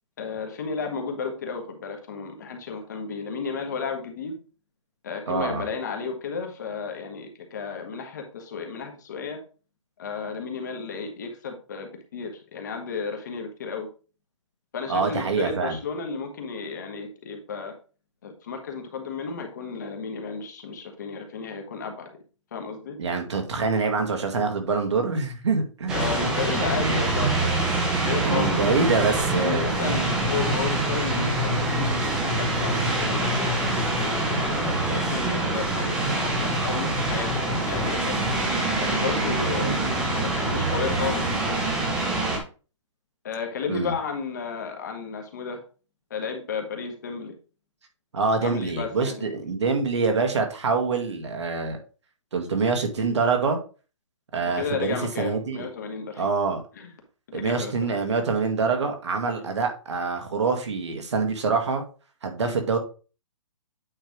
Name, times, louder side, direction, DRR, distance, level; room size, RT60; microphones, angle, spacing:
voice 1, 0.2-4.3 5.0-9.4 10.0-13.9 14.7-17.7 18.2-22.1 22.5-23.0 25.9-28.9 29.3-34.6 34.9-38.2 38.8-39.8 40.1-41.4 43.2-45.6 46.1-47.3 48.4-49.4 54.4-56.3 56.8-56.9 57.3-57.7 59.3-59.4 62.4-62.6, left 5 dB, 35° left, 3 dB, 1.3 m, -33 dB
voice 2, 5.3-5.7 14.9-15.8 23.0-26.2 26.5-27.0 28.2-29.7 43.7-43.9 48.1-51.8 52.3-53.6 54.3-55.7 56.2-56.6 57.3-61.8 62.2-62.8, right 4 dB, 60° right, 4 dB, 1.9 m, -25 dB
sound 1, 25.9-42.4, right 2 dB, 5° right, 0.5 m, -25 dB
8.8 x 3.3 x 4.7 m, 0.36 s
hypercardioid pair, 175°, 16 cm